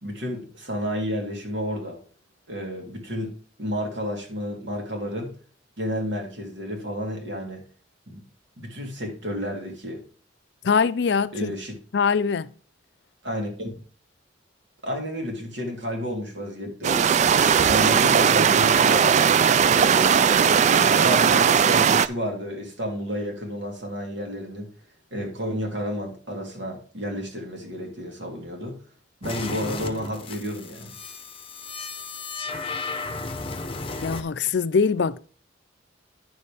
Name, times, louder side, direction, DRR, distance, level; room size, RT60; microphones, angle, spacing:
voice 1, 0.0-2.0 2.5-5.3 5.8-7.6 8.1-8.2 8.6-10.0 11.3-11.7 13.2-13.7 14.8-17.0 17.7-19.3 19.7-20.3 20.9-24.7 25.1-28.8 29.2-30.9, equal, 70° right, 2.6 m, -31 dB
voice 2, 10.6-11.5 11.9-12.5 34.0-35.3, left 5 dB, 60° left, 0.4 m, -23 dB
sound 1, 16.8-22.1, right 7 dB, 40° right, 0.3 m, -18 dB
sound 2, 29.2-34.2, left 3 dB, 30° left, 0.8 m, -34 dB
9.7 x 6.8 x 3.4 m
head